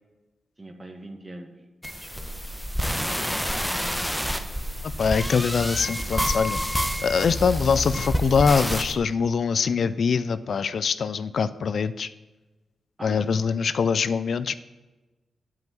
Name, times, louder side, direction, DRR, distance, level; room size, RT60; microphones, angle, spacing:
voice 1, 0.6-1.5 2.0-2.3 3.0-3.9 13.0-13.3, right 1 dB, 30° right, 5 dB, 1.6 m, -42 dB
sound 1, 1.8-8.9, equal, ahead, 1.0 m, -28 dB
voice 2, 5.0-12.1 13.0-14.5, left 6 dB, 65° left, 15 dB, 0.3 m, -23 dB
7.7 x 5.6 x 7.5 m, 1.2 s
supercardioid pair, 45°, 0 cm